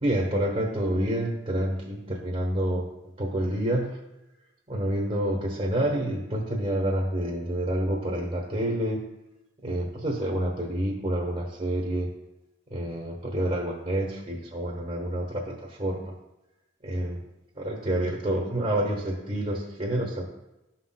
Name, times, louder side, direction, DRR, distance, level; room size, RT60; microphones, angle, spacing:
voice 1, 0.0-2.9 3.2-4.0 4.7-9.0 9.6-12.1 12.7-16.2 16.8-17.2 17.6-20.2, right 1 dB, 35° right, -2 dB, 1.1 m, -28 dB
12.5 x 5.8 x 2.2 m, 0.97 s
head